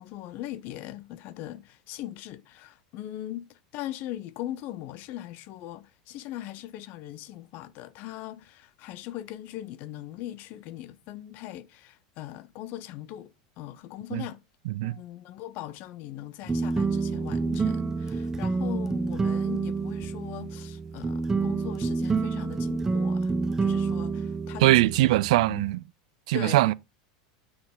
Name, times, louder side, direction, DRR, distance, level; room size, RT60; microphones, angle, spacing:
voice 1, 0.0-14.4 14.8-25.2 25.5-25.7 26.3-26.7, left 13 dB, 55° left, 0.6 m, -40 dB
voice 2, 14.7-15.0 24.6-25.8 26.3-26.7, right 18 dB, 70° right, 0.3 m, -21 dB
sound 1, 16.5-25.7, right 4 dB, 15° right, 0.5 m, -28 dB
9.5 x 4.0 x 3.7 m
hypercardioid pair, 105°, 4 cm